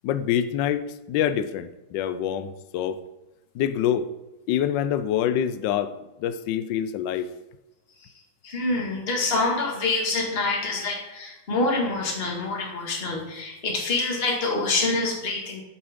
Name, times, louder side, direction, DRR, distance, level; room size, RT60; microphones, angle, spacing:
voice 1, 0.0-3.0 3.5-4.1 4.5-7.3, left 9 dB, 75° left, 12 dB, 1.1 m, -26 dB
voice 2, 8.4-15.6, left 3 dB, 30° left, -1 dB, 2.0 m, -26 dB
8.8 x 8.0 x 3.7 m, 1.0 s
omnidirectional pair, 2.4 m